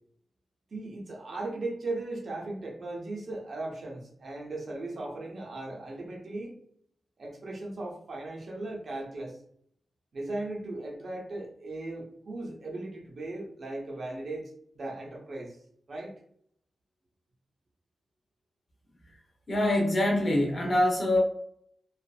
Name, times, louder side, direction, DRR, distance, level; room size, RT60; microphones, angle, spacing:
voice 1, 0.7-6.5 7.2-9.4 10.1-14.4 14.7-15.6 15.9-16.1, right 2 dB, 50° right, -2 dB, 0.8 m, -37 dB
voice 2, 19.5-21.2, left 1 dB, 35° left, -2 dB, 0.7 m, -24 dB
2.7 x 2.4 x 2.3 m, 0.66 s
wide cardioid pair, 160°, 0 cm